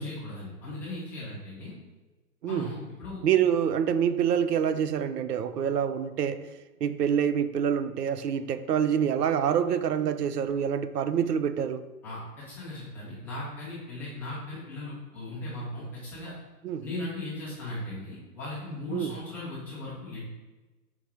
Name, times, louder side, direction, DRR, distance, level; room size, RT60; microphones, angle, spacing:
voice 1, 0.0-1.7 2.5-3.2 12.0-16.3 16.8-20.3, left 2 dB, 5° left, -10 dB, 0.4 m, -38 dB
voice 2, 2.4-2.7 3.2-6.4 6.8-11.8 16.6-16.9 18.9-19.2, right 8 dB, 75° right, 12 dB, 0.6 m, -26 dB
4.7 x 3.6 x 5.6 m, 1.2 s
hypercardioid pair, 130°, 48 cm